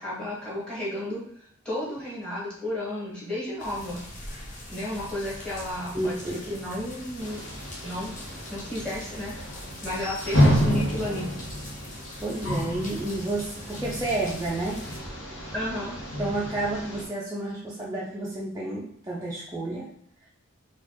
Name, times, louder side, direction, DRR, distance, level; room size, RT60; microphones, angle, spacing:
voice 1, 0.0-4.0 4.7-7.4 7.8-8.1 8.5-9.3 9.8-11.3 15.5-16.0, left 1 dB, 5° left, -7 dB, 1.3 m, -33 dB
sound 1, 3.6-15.0, left 1 dB, 35° left, 0.7 m, -42 dB
voice 2, 5.9-6.5 12.2-14.8 16.2-19.9, right 2 dB, 15° right, -5 dB, 0.4 m, -30 dB
sound 2, 7.2-17.0, equal, 80° left, 1.0 m, -29 dB
4.2 x 2.3 x 2.9 m, 0.68 s
head